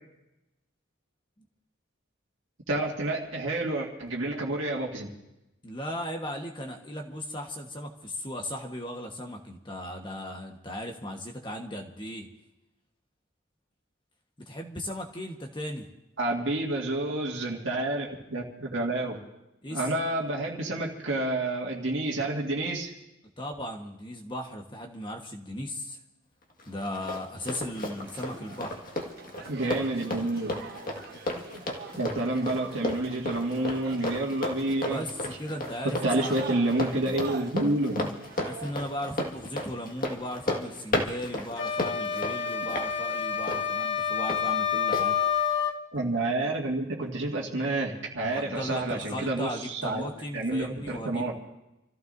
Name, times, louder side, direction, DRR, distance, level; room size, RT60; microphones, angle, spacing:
voice 1, 2.7-5.1 16.2-19.2 19.7-22.9 29.5-30.5 32.0-35.0 35.8-38.1 45.9-51.3, right 2 dB, 65° right, -2 dB, 2.0 m, -29 dB
voice 2, 5.6-12.3 14.4-15.9 19.6-19.8 23.4-26.0 26.7-28.8 34.8-36.4 38.4-45.2 48.3-51.3, equal, 25° left, 2 dB, 1.3 m, -37 dB
Run, 26.6-44.4 44.9-45.1, left 1 dB, 40° left, 1.8 m, -34 dB
sound 1, 28.0-38.7, right 3 dB, 50° right, 1.1 m, -45 dB
sound 2, 41.6-45.8, left 7 dB, 60° left, 1.0 m, -28 dB
28.5 x 15.0 x 2.7 m, 0.94 s
head